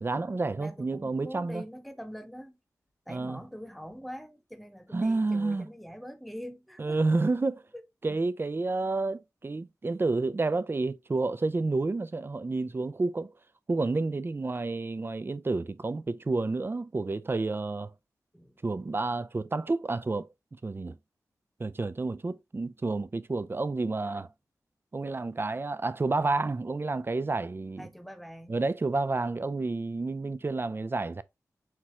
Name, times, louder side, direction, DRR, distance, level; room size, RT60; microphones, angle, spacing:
voice 1, 0.0-1.6 3.1-3.4 4.9-5.7 6.8-7.6 8.0-13.3 13.7-17.9 18.6-20.3 20.6-21.0 21.6-24.3 24.9-27.9 28.5-31.2, right 3 dB, 35° right, 0.4 m, -30 dB
voice 2, 0.6-2.6 3.1-7.0 7.7-7.8 18.3-18.6 27.8-28.6, equal, ahead, 0.9 m, -44 dB
5.7 x 2.3 x 3.0 m
cardioid pair, 45°, 7 cm